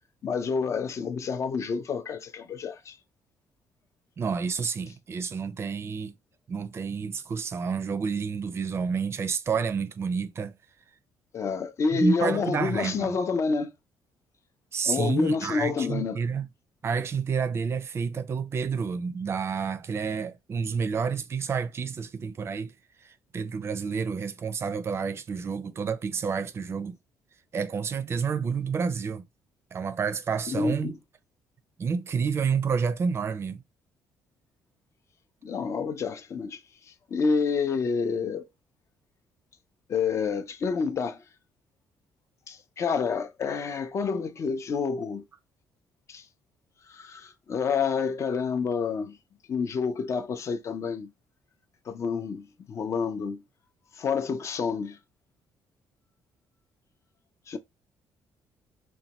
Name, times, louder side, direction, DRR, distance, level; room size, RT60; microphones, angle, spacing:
voice 1, 0.2-3.0 11.3-13.7 14.8-16.2 30.5-31.0 35.4-36.6 37.1-38.5 39.9-41.2 42.5-45.2 46.1-46.3 46.9-49.2 49.5-51.1 51.9-53.4 53.9-55.0 57.5-57.6, left 5 dB, 45° left, 0.5 m, -28 dB
voice 2, 4.2-6.1 6.5-10.5 11.9-13.2 14.7-16.5 16.8-22.7 23.0-27.0 27.5-29.2 29.7-30.9 31.8-33.6, right 5 dB, 35° right, 0.5 m, -29 dB
3.9 x 2.2 x 2.9 m
cardioid pair, 110°, 7 cm